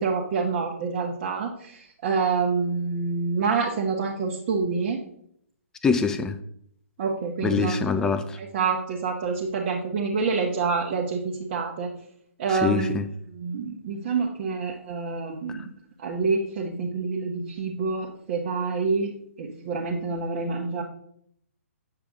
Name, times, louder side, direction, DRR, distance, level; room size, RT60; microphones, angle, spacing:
voice 1, 0.0-5.0 7.0-7.8 8.4-11.9 12.4-12.9 13.3-15.7 16.0-19.1 19.4-20.8, right 4 dB, 35° right, -1 dB, 1.2 m, -27 dB
voice 2, 5.8-6.4 7.4-8.4 12.5-13.1 15.5-15.6, left 5 dB, 10° left, 9 dB, 0.5 m, -24 dB
8.5 x 6.8 x 3.7 m, 0.68 s
figure-of-eight pair, 130°, 8 cm